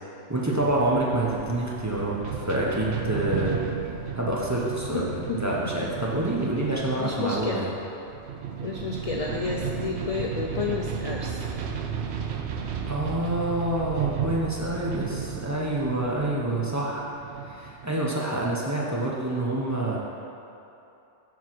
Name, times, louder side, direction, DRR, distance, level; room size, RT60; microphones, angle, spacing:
voice 1, 0.3-3.6 4.1-7.7 12.8-17.1 17.5-20.0, right 1 dB, 15° right, -5 dB, 0.7 m, -27 dB
sound 1, 0.6-18.1, right 7 dB, 65° right, 0.8 m, -34 dB
voice 2, 4.9-5.5 7.0-7.7 8.6-11.4 16.2-16.7, left 4 dB, 60° left, -1 dB, 0.3 m, -31 dB
7.2 x 3.8 x 6.0 m, 2.9 s
omnidirectional pair, 1.3 m